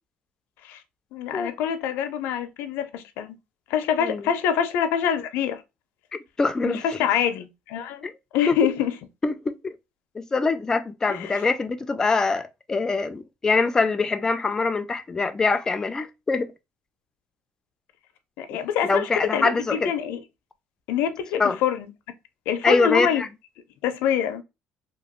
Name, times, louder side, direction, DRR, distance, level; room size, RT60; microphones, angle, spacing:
voice 1, 1.1-3.4 3.7-5.6 6.6-8.0 8.3-8.9 11.1-11.4 18.4-20.2 20.9-21.9 22.5-23.2 23.8-24.4, left 8 dB, 90° left, 0.5 m, -25 dB
voice 2, 6.4-7.1 8.0-8.1 8.5-8.6 9.2-9.7 10.2-16.5 18.8-19.9 21.4-21.6 22.6-23.3, left 4 dB, 15° left, 0.3 m, -24 dB
2.9 x 2.3 x 2.9 m
cardioid pair, 155°, 4 cm